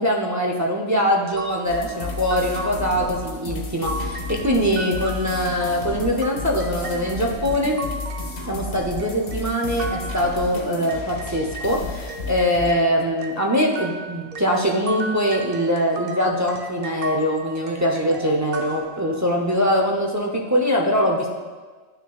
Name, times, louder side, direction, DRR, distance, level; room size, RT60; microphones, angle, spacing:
voice 1, 0.0-3.9 4.4-7.8 8.5-21.3, equal, 25° right, -1 dB, 0.4 m, -22 dB
sound 1, 1.3-11.8 12.1-19.5, right 3 dB, 55° right, 0.7 m, -36 dB
sound 2, 1.7-12.7, left 3 dB, 85° left, 1.3 m, -32 dB
11.0 x 6.2 x 2.3 m, 1.4 s
omnidirectional pair, 1.3 m